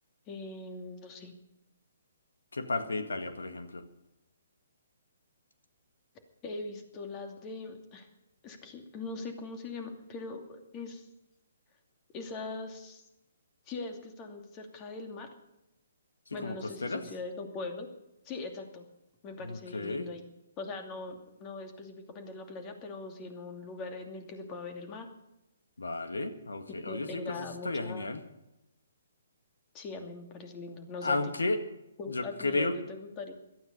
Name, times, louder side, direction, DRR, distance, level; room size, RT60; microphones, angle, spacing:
voice 1, 0.3-1.3 6.4-8.1 8.4-11.1 12.1-13.0 13.7-15.3 16.3-17.9 18.2-18.9 19.2-20.2 20.6-25.1 26.7-28.1 29.7-31.2 32.0-33.3, left 3 dB, 25° left, 5 dB, 2.6 m, -41 dB
voice 2, 2.5-3.8 16.3-17.0 19.4-20.1 25.8-28.2 31.0-31.6 32.1-32.8, left 2 dB, 85° left, 8 dB, 1.9 m, -33 dB
17.5 x 13.0 x 5.4 m, 0.89 s
hypercardioid pair, 140°, 0 cm